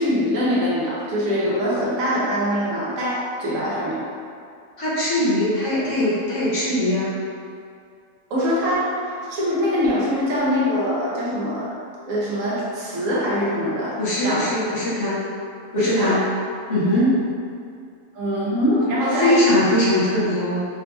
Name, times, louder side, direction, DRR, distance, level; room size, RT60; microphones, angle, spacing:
voice 1, 0.0-4.0 8.3-11.8 12.1-14.5 15.7-16.2 18.1-19.4, equal, 70° right, -7 dB, 1.1 m, -23 dB
voice 2, 4.8-7.1 14.0-15.2 15.7-16.2 16.7-17.2 19.2-20.7, left 1 dB, 65° left, -9 dB, 1.2 m, -21 dB
3.8 x 2.6 x 2.3 m, 2.3 s
omnidirectional pair, 1.4 m